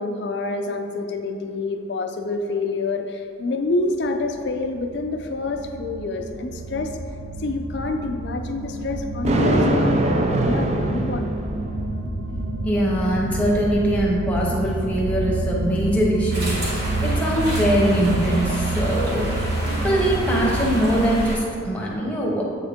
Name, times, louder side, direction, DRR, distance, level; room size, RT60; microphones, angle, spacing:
voice 1, 0.0-7.0 7.4-11.3, left 3 dB, 60° left, 5 dB, 0.5 m, -27 dB
sound 1, 3.9-21.4, right 2 dB, 85° right, 0.5 m, -28 dB
Thunder, 9.2-11.8, right 1 dB, 35° right, 0.4 m, -22 dB
voice 2, 12.6-22.4, equal, 5° left, -4 dB, 0.9 m, -22 dB
sound 2, 16.3-21.4, right 1 dB, 60° right, 1.3 m, -32 dB
7.9 x 3.6 x 3.6 m, 2.2 s
head